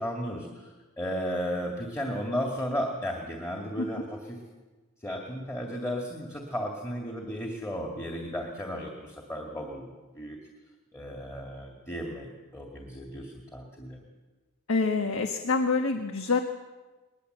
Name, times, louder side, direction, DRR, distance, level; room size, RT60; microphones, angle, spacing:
voice 1, 0.0-4.4 5.0-10.4 10.9-12.3 12.5-14.0, equal, 10° left, 1 dB, 2.1 m, -34 dB
voice 2, 14.7-16.4, left 4 dB, 70° left, 6 dB, 1.3 m, -26 dB
20.5 x 20.5 x 7.9 m, 1.3 s
head